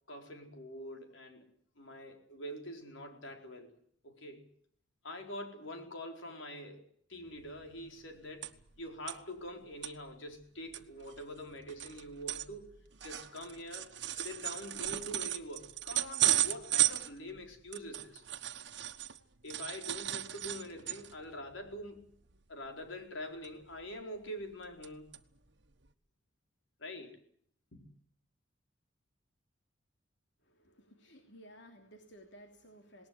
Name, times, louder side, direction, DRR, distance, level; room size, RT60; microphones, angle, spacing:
voice 1, 0.1-3.7 4.0-4.5 5.0-8.5 8.8-18.2 19.4-22.0 22.5-25.1 26.8-27.2 27.7-27.8, left 1 dB, 90° left, 4 dB, 4.7 m, -45 dB
sound 1, 7.5-7.6 7.8-8.8 9.1-9.2 9.6-9.9 10.4-10.5 10.7-19.2 19.5-21.2 21.6-21.8 22.1-22.4 23.4-24.0 24.4-24.9 25.1-25.2 25.9-26.0, right 13 dB, 65° right, 1.3 m, -35 dB
voice 2, 30.4-33.1, equal, 65° left, 4 dB, 3.1 m, -56 dB
19.5 x 19.5 x 9.7 m, 0.63 s
head